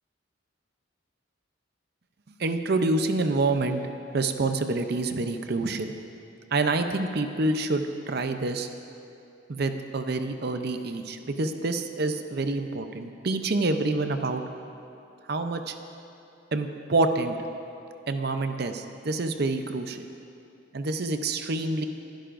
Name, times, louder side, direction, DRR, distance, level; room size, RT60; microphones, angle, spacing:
voice 1, 2.4-3.8 4.1-5.9 6.5-8.7 9.5-14.4 15.3-15.7 16.5-17.4 18.1-20.1 20.7-21.8, right 2 dB, 50° right, 7 dB, 0.6 m, -27 dB
21.5 x 11.5 x 2.6 m, 2.7 s
head